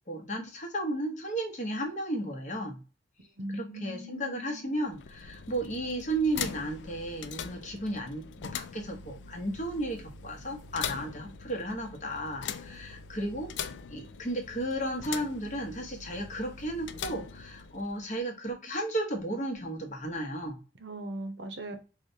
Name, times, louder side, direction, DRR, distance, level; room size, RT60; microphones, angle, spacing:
voice 1, 0.1-2.8 3.5-13.5 13.9-20.6, right 1 dB, 40° left, 0.8 m, -34 dB
voice 2, 3.4-4.8 20.8-21.8, right 1 dB, 80° right, 0.7 m, -40 dB
sound 1, 4.7-18.0, left 7 dB, 85° left, 0.3 m, -42 dB
4.7 x 2.1 x 2.6 m
head